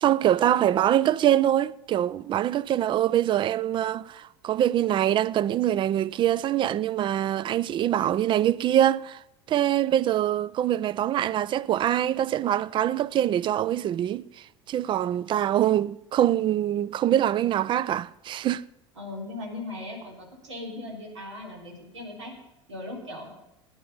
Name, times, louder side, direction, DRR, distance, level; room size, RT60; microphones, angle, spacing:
voice 1, 0.0-9.2 9.5-18.6, right 11 dB, 35° right, 0.5 m, -24 dB
voice 2, 19.0-22.3 22.7-23.3, left 2 dB, 80° right, 3.8 m, -38 dB
17.0 x 10.5 x 5.5 m
figure-of-eight pair, 75°, 15 cm